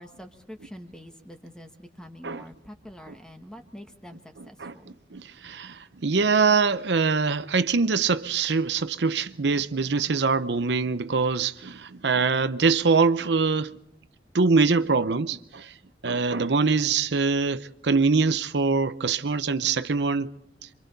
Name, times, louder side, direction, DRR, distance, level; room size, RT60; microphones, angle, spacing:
voice 1, 0.0-5.0, equal, 5° left, 1.4 m, -45 dB
voice 2, 5.1-13.8 14.3-15.7 16.0-20.3, right 4 dB, 70° right, 0.7 m, -23 dB
27.5 x 24.5 x 4.1 m
head